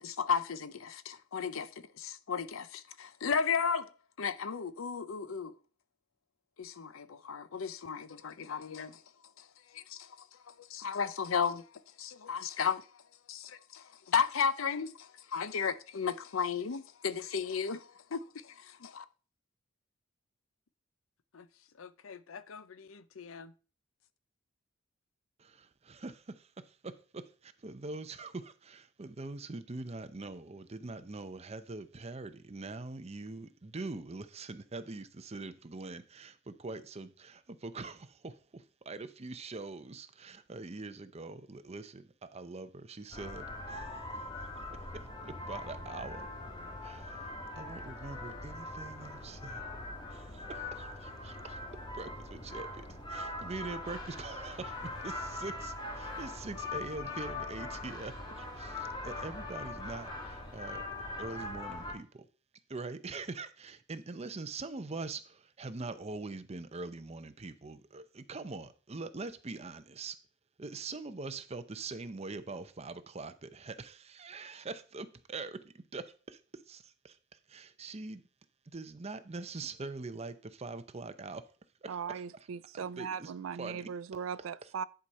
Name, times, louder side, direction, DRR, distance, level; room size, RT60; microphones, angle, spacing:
voice 1, 0.0-3.9 4.2-5.5 6.6-9.0 9.4-9.5 9.7-11.6 12.0-12.9 13.3-19.1 21.3-21.4 21.8-23.5, left 6 dB, 85° left, 0.6 m, -35 dB
voice 2, 25.4-44.0 44.9-46.3 46.8-49.6 50.1-51.6 51.9-60.8 61.2-62.3 62.7-70.2 70.6-77.2 77.5-78.2 78.7-81.4 81.8-82.2 82.7-83.3 83.6-83.9 84.6-84.7, right 3 dB, 30° right, 0.6 m, -43 dB
sound 1, 43.1-61.9, left 2 dB, 25° left, 1.7 m, -42 dB
voice 3, 81.9-84.8, right 7 dB, 80° right, 0.4 m, -39 dB
10.5 x 4.9 x 4.2 m
head